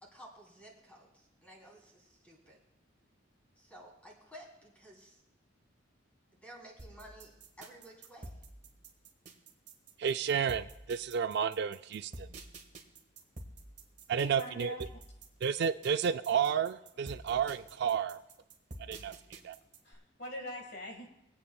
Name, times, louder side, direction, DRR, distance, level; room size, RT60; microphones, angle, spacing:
voice 1, 0.0-2.6 3.6-5.2 6.3-8.4, right 1 dB, 5° left, -2 dB, 3.0 m, -54 dB
sound 1, 6.8-19.9, right 2 dB, 40° right, 1.4 m, -49 dB
voice 2, 10.0-12.3 14.1-14.7 15.4-18.2 18.9-19.5, right 7 dB, 55° right, 11 dB, 0.3 m, -31 dB
voice 3, 14.2-15.0 19.8-21.1, left 1 dB, 55° left, 3 dB, 1.6 m, -43 dB
23.5 x 8.6 x 2.2 m, 0.94 s
head